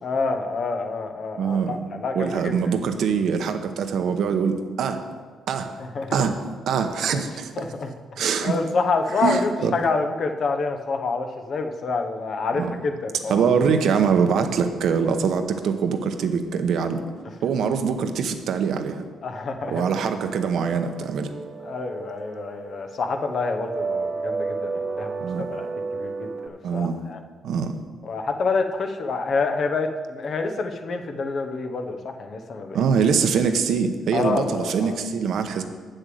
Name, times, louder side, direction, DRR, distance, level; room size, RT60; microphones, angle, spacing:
voice 1, 0.0-2.7 5.9-6.2 7.6-7.9 8.4-13.5 17.3-17.4 19.2-20.0 21.6-25.7 25.9-27.2 28.0-32.8 34.1-35.0, left 4 dB, 55° left, 6 dB, 0.9 m, -27 dB
voice 2, 1.4-1.8 2.1-5.0 5.5-5.8 6.1-7.5 8.2-8.5 9.2-9.8 12.5-12.7 13.3-17.0 17.4-19.0 19.7-21.3 25.2-25.5 26.6-27.0 27.4-27.8 32.7-35.6, right 6 dB, 70° right, 7 dB, 0.9 m, -23 dB
sound 1, 19.6-26.5, right 4 dB, 45° right, 0.5 m, -33 dB
7.8 x 6.6 x 7.7 m, 1.5 s
cardioid pair, 90°, 0 cm